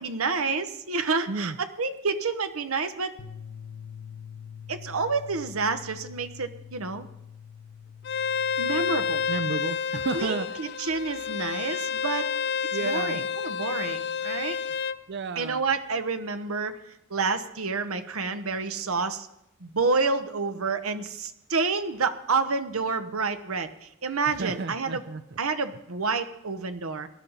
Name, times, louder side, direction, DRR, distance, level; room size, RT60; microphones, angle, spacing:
voice 1, 0.0-1.5 1.8-3.1 4.7-7.1 8.6-9.3 10.1-12.3 12.8-14.6 15.4-16.8 17.1-19.3 19.6-23.7 24.0-25.0 25.4-27.1, right 4 dB, 90° right, 9 dB, 1.1 m, -29 dB
voice 2, 1.3-1.6 9.3-11.1 12.6-13.3 15.1-15.8 24.3-25.4, right 4 dB, 50° right, 11 dB, 0.5 m, -33 dB
sound 1, 3.2-9.4, left 7 dB, 70° left, 1.0 m, -44 dB
Bowed string instrument, 8.0-15.0, left 6 dB, 50° left, 0.5 m, -29 dB
19.0 x 12.0 x 4.1 m, 0.82 s
head